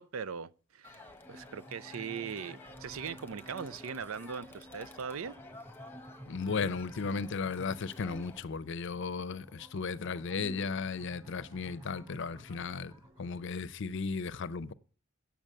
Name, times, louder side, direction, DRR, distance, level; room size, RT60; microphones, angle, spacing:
voice 1, 0.0-5.4, right 6 dB, 90° right, 0.5 m, -40 dB
Crowd, 0.8-8.4, left 2 dB, 10° left, 1.1 m, -52 dB
sound 1, 1.2-13.4, equal, 20° right, 5.1 m, -53 dB
voice 2, 6.3-12.9 13.2-14.7, left 4 dB, 65° left, 0.6 m, -35 dB
8.9 x 7.0 x 6.5 m
head